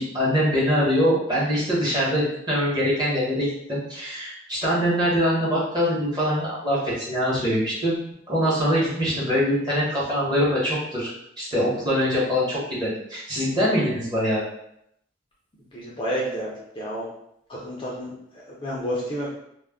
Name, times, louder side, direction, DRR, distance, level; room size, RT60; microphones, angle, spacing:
voice 1, 0.0-8.0 8.3-11.1 11.4-14.4, equal, 20° right, -7 dB, 0.9 m, -23 dB
voice 2, 15.7-17.0 17.5-18.1 18.5-19.3, equal, 25° left, -5 dB, 0.4 m, -30 dB
2.3 x 2.1 x 3.4 m, 0.75 s
head